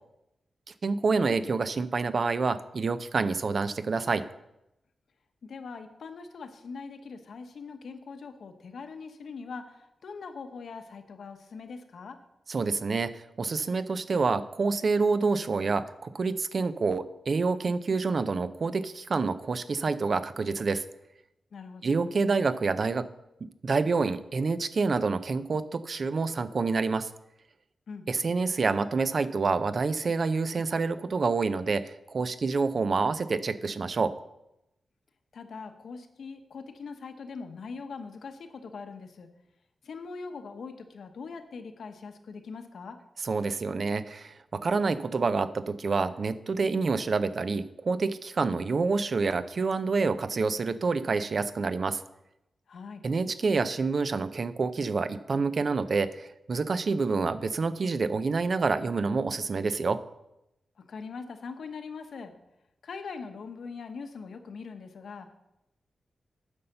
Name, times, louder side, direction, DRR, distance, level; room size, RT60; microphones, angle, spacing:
voice 1, 0.8-4.3 12.5-20.8 21.8-23.1 23.6-27.1 28.1-34.1 43.2-52.0 53.0-60.0, right 4 dB, 45° right, 13 dB, 0.5 m, -27 dB
voice 2, 5.4-12.2 21.5-22.0 27.9-28.1 35.3-39.3 39.8-43.0 52.7-53.1 60.8-62.3 62.8-65.3, left 5 dB, 65° left, 7 dB, 1.0 m, -42 dB
9.7 x 5.6 x 6.6 m, 0.87 s
wide cardioid pair, 160°, 0 cm